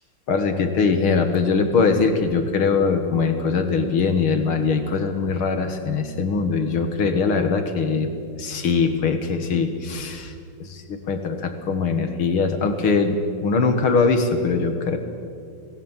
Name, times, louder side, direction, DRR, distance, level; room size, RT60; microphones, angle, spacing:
voice 1, 0.3-8.1 8.4-10.3 10.6-13.2 13.4-15.0, left 4 dB, 75° left, 6 dB, 2.6 m, -21 dB
25.5 x 18.0 x 7.4 m, 2.3 s
omnidirectional pair, 2.4 m